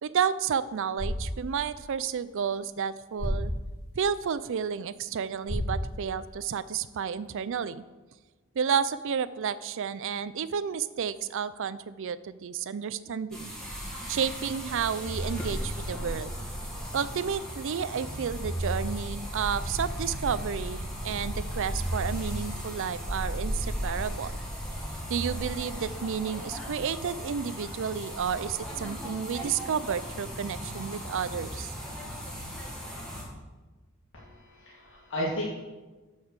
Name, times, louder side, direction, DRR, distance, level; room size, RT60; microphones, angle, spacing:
voice 1, 0.0-3.5 4.0-7.8 8.6-13.5 14.1-16.3 16.9-24.3 25.1-31.7, right 7 dB, 65° right, 16 dB, 0.4 m, -31 dB
sound 1, 0.8-6.8, equal, 90° left, 2.3 m, -36 dB
sound 2, 13.3-33.2, equal, 5° left, 2.0 m, -36 dB
voice 2, 34.1-35.5, equal, 60° left, -5 dB, 2.0 m, -34 dB
7.9 x 5.6 x 6.5 m, 1.2 s
head